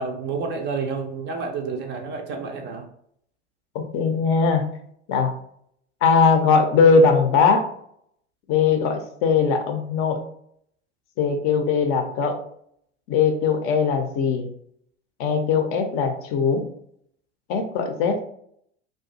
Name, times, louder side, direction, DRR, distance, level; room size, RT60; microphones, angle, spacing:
voice 1, 0.0-2.8, right 4 dB, 30° right, 4 dB, 0.4 m, -29 dB
voice 2, 3.7-4.6 5.1-5.4 6.0-7.7 8.5-10.2 11.2-12.4 13.1-14.5 15.2-16.6 17.5-18.2, left 5 dB, 40° left, 5 dB, 0.5 m, -20 dB
2.4 x 2.2 x 2.6 m, 0.67 s
figure-of-eight pair, 80°, 35 cm